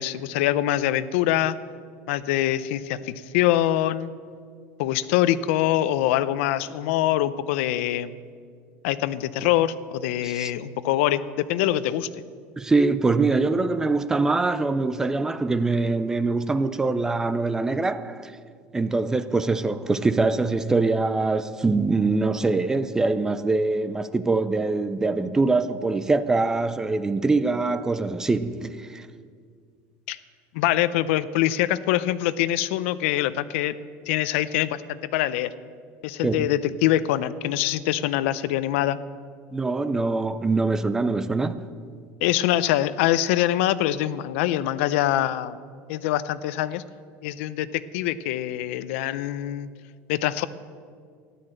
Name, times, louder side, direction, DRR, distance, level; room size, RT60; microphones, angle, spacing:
voice 1, 0.0-1.6 2.1-4.1 4.8-8.1 8.8-12.1 30.1-30.2 30.5-33.8 34.1-35.5 36.0-39.0 42.2-45.6 45.9-46.8 47.2-49.7 50.1-50.5, left 13 dB, 85° left, 0.6 m, -24 dB
voice 2, 12.6-18.3 18.7-29.1 36.2-36.5 39.5-41.6, right 3 dB, 10° right, 0.4 m, -23 dB
13.5 x 11.0 x 7.8 m
cardioid pair, 180°, 7 cm